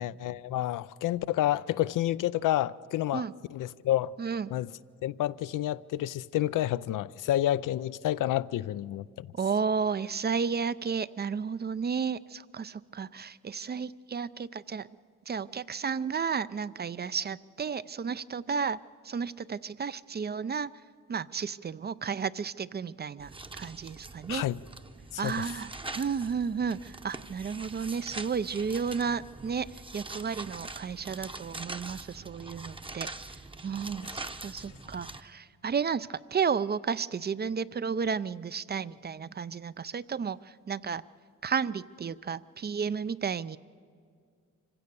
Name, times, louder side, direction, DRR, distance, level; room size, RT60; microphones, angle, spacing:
voice 1, 0.0-3.2 3.5-4.1 4.5-4.7 5.0-9.3 24.3-24.6 25.1-25.4 34.0-34.3, left 13 dB, 75° left, 0.5 m, -29 dB
voice 2, 4.2-4.5 9.4-14.9 15.3-18.8 19.0-20.7 21.1-24.4 25.2-33.1 33.6-41.0 41.4-43.6, right 6 dB, 30° right, 0.5 m, -32 dB
sound 1, 23.2-35.2, right 2 dB, 15° right, 0.9 m, -43 dB
25.0 x 16.0 x 6.9 m
supercardioid pair, 60°, 33 cm